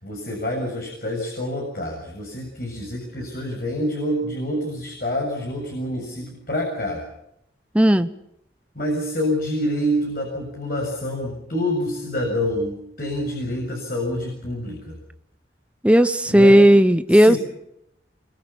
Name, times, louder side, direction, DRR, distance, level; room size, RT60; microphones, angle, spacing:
voice 1, 0.0-7.0 8.8-15.0 16.3-16.6 17.1-17.4, left 1 dB, 55° left, 0 dB, 7.3 m, -27 dB
voice 2, 7.7-8.1 15.8-17.4, equal, 5° right, 10 dB, 0.9 m, -14 dB
27.0 x 25.0 x 5.9 m, 0.77 s
head